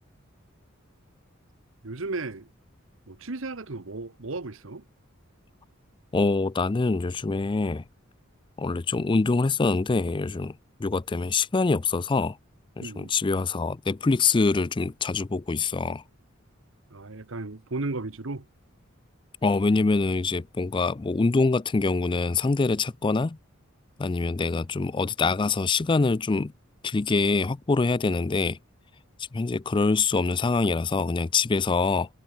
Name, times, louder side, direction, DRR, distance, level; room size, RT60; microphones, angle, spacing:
voice 1, 1.8-2.5 3.1-4.8 12.8-13.1 16.9-18.5, right 3 dB, 65° right, 1.2 m, -34 dB
voice 2, 6.1-7.8 8.6-10.5 10.8-12.4 12.8-16.0 19.4-23.4 24.0-26.5 26.8-28.6 29.3-32.1, left 3 dB, 25° left, 0.4 m, -24 dB
head